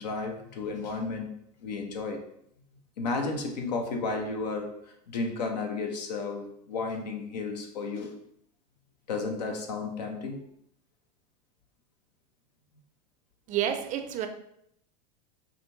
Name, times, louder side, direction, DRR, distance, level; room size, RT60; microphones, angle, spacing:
voice 1, 0.0-1.3 1.6-2.3 3.0-8.2 9.1-10.5, left 3 dB, 80° left, 4 dB, 0.8 m, -33 dB
voice 2, 13.5-14.3, right 10 dB, 35° right, 7 dB, 0.4 m, -29 dB
5.0 x 2.3 x 2.6 m, 0.71 s
hypercardioid pair, 95°, 21 cm